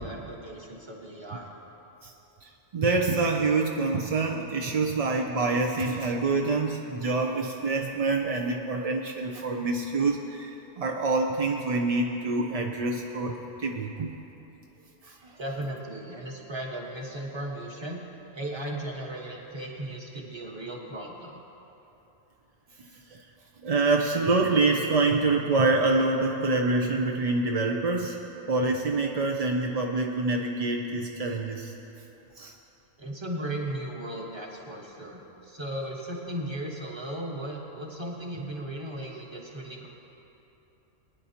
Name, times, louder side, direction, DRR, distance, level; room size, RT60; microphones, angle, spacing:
voice 1, 0.0-1.5 15.4-18.0 18.3-21.4 33.0-39.9, right 1 dB, 20° right, -2 dB, 1.3 m, -36 dB
voice 2, 2.4-14.2 15.0-15.4 23.1-23.2 23.6-28.2 28.5-31.7 32.4-32.5, right 3 dB, 55° right, 2 dB, 0.4 m, -26 dB
20.5 x 9.8 x 2.9 m, 3.0 s
omnidirectional pair, 1.4 m